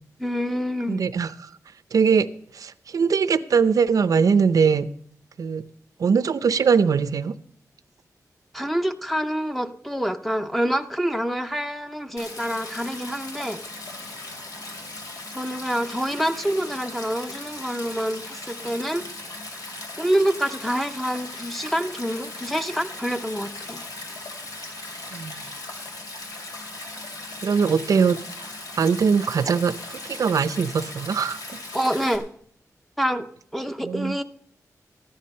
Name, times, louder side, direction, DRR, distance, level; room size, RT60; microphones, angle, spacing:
voice 1, 0.2-1.0 8.5-13.6 15.3-19.0 20.0-23.8 31.7-32.2 33.0-33.3 33.5-34.2, equal, ahead, 8 dB, 0.7 m, -26 dB
voice 2, 0.9-1.5 1.9-2.3 2.5-4.9 5.4-5.6 6.0-7.4 25.1-25.5 27.4-28.2 28.8-31.4 33.8-34.2, right 6 dB, 70° right, 13 dB, 0.6 m, -21 dB
Stream, 12.2-32.2, left 2 dB, 85° left, 2.7 m, -38 dB
14.0 x 10.5 x 5.4 m, 0.65 s
wide cardioid pair, 125°, 6 cm